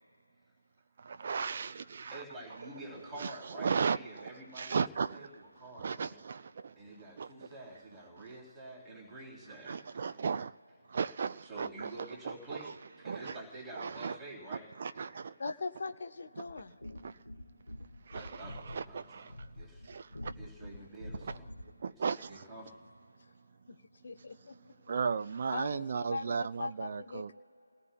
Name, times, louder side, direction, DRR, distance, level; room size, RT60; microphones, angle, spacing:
voice 1, 1.0-2.2 2.5-2.7 3.2-4.3 4.5-6.8 7.2-7.5 9.6-10.6 10.9-11.9 12.2-12.7 13.0-13.4 13.7-14.2 14.8-15.4 16.4-16.5 17.0-17.2 18.0-19.5 19.8-20.3 21.2-21.3 21.8-22.5 24.9-27.3, right 5 dB, 35° right, 0.3 m, -36 dB
voice 2, 2.1-6.2 6.8-9.8 11.4-12.7 13.0-14.7 18.1-19.9 20.3-21.5 22.3-22.8, right 2 dB, 5° right, 2.9 m, -48 dB
voice 3, 15.4-16.8 23.7-23.8 24.0-24.7 25.5-27.3, left 4 dB, 45° left, 0.9 m, -40 dB
sound 1, 16.4-21.8, left 1 dB, 75° left, 1.2 m, -47 dB
29.0 x 18.0 x 2.2 m
figure-of-eight pair, 155°, 0 cm